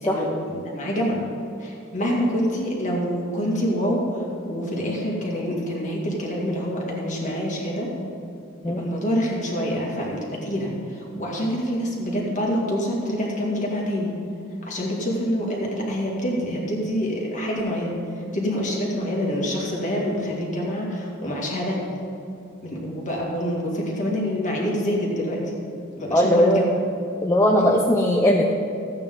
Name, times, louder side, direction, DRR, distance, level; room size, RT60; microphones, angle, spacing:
voice 1, 0.0-1.2 1.6-7.9 8.7-14.1 14.6-21.8 22.6-25.4 26.0-26.7 27.6-27.7, equal, 35° left, -2 dB, 2.1 m, -26 dB
voice 2, 26.1-26.7 27.2-28.4, equal, 15° left, -1 dB, 0.6 m, -19 dB
14.5 x 8.8 x 3.8 m, 2.6 s
head